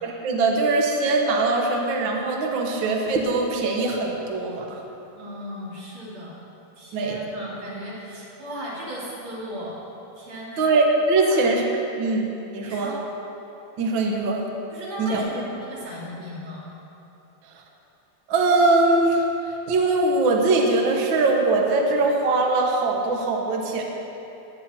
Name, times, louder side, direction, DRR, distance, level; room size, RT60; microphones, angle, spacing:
voice 1, 0.0-4.8 6.9-7.2 10.6-11.6 12.0-12.9 13.8-14.5 15.0-15.2 18.3-23.8, right 3 dB, 50° right, 0 dB, 1.7 m, -22 dB
voice 2, 5.2-6.4 6.8-9.8 10.2-10.7 11.2-11.4 11.9-12.0 12.6-13.0 14.7-16.7, equal, 90° right, -7 dB, 4.7 m, -36 dB
21.0 x 9.6 x 4.5 m, 2.9 s
omnidirectional pair, 3.4 m